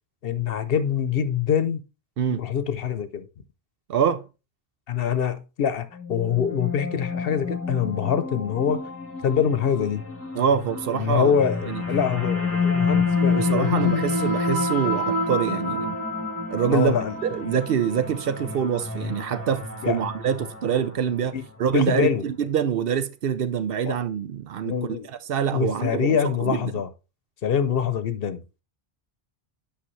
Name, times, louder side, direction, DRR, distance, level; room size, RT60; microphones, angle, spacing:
voice 1, 0.2-1.8 2.3-3.3 4.9-8.8 9.2-10.0 10.9-14.0 16.7-17.2 19.8-20.0 21.3-22.2 23.9-24.0 24.6-25.1 25.5-26.9 27.4-28.4, left 7 dB, 65° left, 0.9 m, -25 dB
voice 2, 3.9-4.2 10.3-11.3 11.7-11.8 13.3-16.0 16.5-16.9 17.2-24.7 25.3-26.7, right 8 dB, 65° right, 0.8 m, -25 dB
sound 1, 5.9-21.3, left 3 dB, 15° left, 1.1 m, -28 dB
8.7 x 5.8 x 3.1 m
omnidirectional pair, 1.1 m